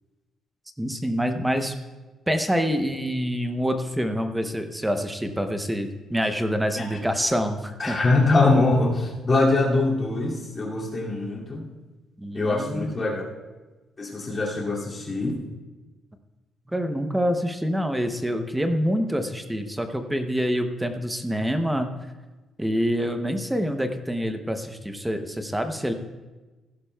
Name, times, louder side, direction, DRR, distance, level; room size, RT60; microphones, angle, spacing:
voice 1, 0.8-1.7 2.3-8.0 8.4-8.5 12.2-13.2 16.7-21.9 22.6-25.9, equal, 5° right, 7 dB, 0.7 m, -26 dB
voice 2, 7.8-11.6 12.3-13.2 14.0-15.4, left 2 dB, 25° left, -4 dB, 2.3 m, -23 dB
16.0 x 11.5 x 2.3 m, 1.2 s
cardioid pair, 165°, 0 cm